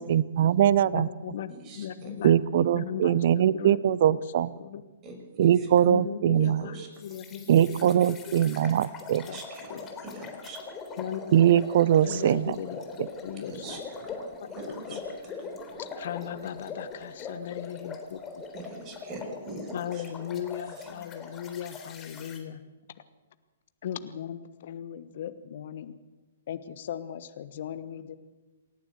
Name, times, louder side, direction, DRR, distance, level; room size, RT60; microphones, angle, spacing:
voice 1, 0.0-1.1 2.2-4.5 5.4-6.7 7.5-9.3 11.3-12.6 13.0-13.1, right 10 dB, 55° right, 20 dB, 0.7 m, -22 dB
voice 2, 0.9-4.8 5.8-8.5 9.2-9.4 9.7-9.8 11.0-11.7 12.0-12.8 13.2-13.8 14.4-15.0 15.9-18.2 19.7-22.6 23.8-25.9 26.5-28.2, left 9 dB, 55° left, 12 dB, 1.2 m, -38 dB
voice 3, 1.7-2.1 5.0-5.2 6.6-6.9 9.3-9.8 10.0-10.6 13.5-13.8 14.5-15.0 18.5-20.0, right 2 dB, 30° right, 3 dB, 5.8 m, -42 dB
sound 1, 7.0-22.4, left 4 dB, 20° left, 3.6 m, -42 dB
28.0 x 11.5 x 8.3 m, 1.2 s
figure-of-eight pair, 120°, 0 cm